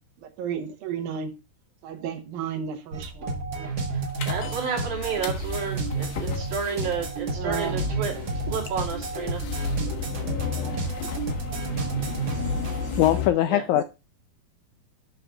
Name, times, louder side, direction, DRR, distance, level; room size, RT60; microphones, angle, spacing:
voice 1, 0.4-1.3 1.8-3.7 7.3-7.8 10.5-10.8, right 7 dB, 85° right, 2.9 m, -33 dB
sound 1, 2.9-13.2, right 3 dB, 40° right, 1.5 m, -31 dB
sound 2, 4.2-13.3, left 5 dB, 70° left, 2.9 m, -34 dB
voice 2, 4.3-8.2 8.5-9.4 13.5-13.6, right 6 dB, 60° right, 4.4 m, -31 dB
voice 3, 13.0-13.8, left 13 dB, 85° left, 1.7 m, -21 dB
11.5 x 6.8 x 2.4 m
omnidirectional pair, 4.0 m